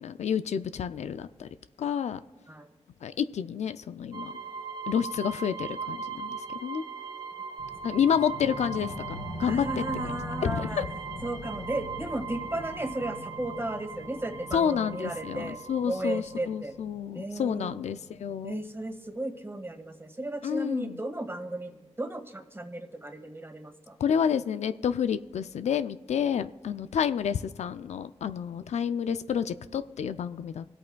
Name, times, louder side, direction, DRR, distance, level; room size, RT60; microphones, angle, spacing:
voice 1, 0.0-1.5 1.8-2.2 3.0-4.3 4.9-6.8 7.8-10.1 10.4-10.9 14.5-18.6 20.4-21.0 24.0-30.7, left 8 dB, 75° left, 13 dB, 0.4 m, -29 dB
sound 1, 4.1-16.6, right 6 dB, 40° right, 0.7 m, -39 dB
sound 2, 7.6-18.7, left 2 dB, 60° left, 3.4 m, -43 dB
voice 2, 9.4-10.8 11.2-15.6 15.8-16.7 17.1-17.8 18.4-24.0, right 1 dB, 20° right, 5 dB, 1.5 m, -35 dB
25.0 x 8.5 x 2.3 m, 1.4 s
supercardioid pair, 40°, 12 cm